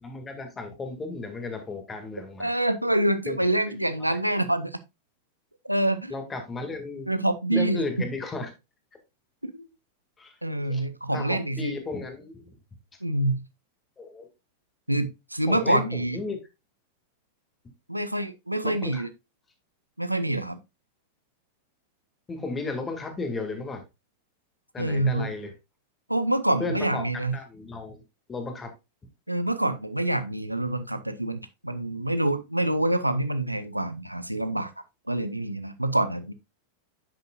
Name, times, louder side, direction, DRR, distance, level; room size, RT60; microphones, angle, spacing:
voice 1, 0.0-2.6 3.3-3.4 4.1-4.2 6.1-7.1 7.5-8.5 10.2-10.3 10.7-10.8 11.1-12.5 14.0-14.3 15.5-16.4 18.6-19.1 22.3-23.8 24.7-25.5 26.6-27.0 27.3-28.0 28.3-28.7, left 3 dB, 15° left, 2.0 m, -34 dB
voice 2, 2.4-4.8 5.6-6.1 7.1-7.8 9.4-9.7 10.4-11.7 13.0-13.4 14.9-16.2 17.9-19.1 20.0-20.6 24.8-25.3 26.1-27.4 29.3-34.7 35.1-36.3, right 1 dB, 90° right, 0.6 m, -26 dB
9.6 x 6.6 x 2.4 m
figure-of-eight pair, 90°, 0 cm